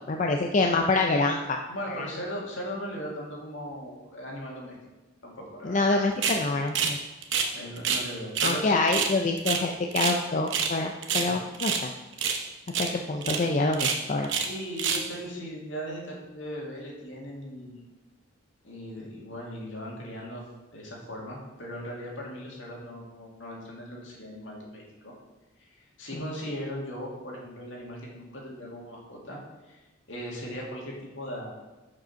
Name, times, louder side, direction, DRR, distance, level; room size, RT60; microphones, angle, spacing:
voice 1, 0.1-1.6 1.9-2.1 5.6-7.0 8.4-11.9 12.8-14.3 26.1-26.2, left 3 dB, 40° left, 2 dB, 0.4 m, -26 dB
voice 2, 1.7-4.7 5.2-5.9 7.5-8.9 11.1-11.4 14.4-17.8 18.6-20.5 20.7-25.1 25.6-25.7 26.0-29.4 29.6-31.6, equal, 70° left, -2 dB, 2.1 m, -38 dB
sound 1, 6.2-6.4 6.7-7.0 7.2-8.1 8.3-8.6 8.9-10.2 10.5-10.8 11.0-11.8 12.2-12.4 12.7-12.9 13.2-13.4 13.7-14.5 14.8-15.1, right 6 dB, 65° right, 0.9 m, -27 dB
6.7 x 5.3 x 5.7 m, 1.1 s
head